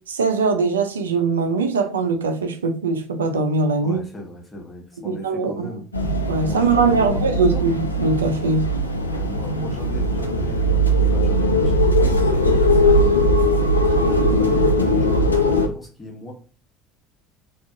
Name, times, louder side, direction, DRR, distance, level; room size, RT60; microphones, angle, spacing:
voice 1, 0.1-4.0 5.1-5.7 6.3-8.7, right 4 dB, 75° right, 0.3 m, -21 dB
voice 2, 3.8-5.8 6.5-7.7 9.0-13.3 13.7-16.3, left 1 dB, 15° left, 1.2 m, -37 dB
sound 1, 5.9-15.7, equal, 85° left, 0.3 m, -19 dB
2.5 x 2.3 x 3.6 m
figure-of-eight pair, 60°, 0 cm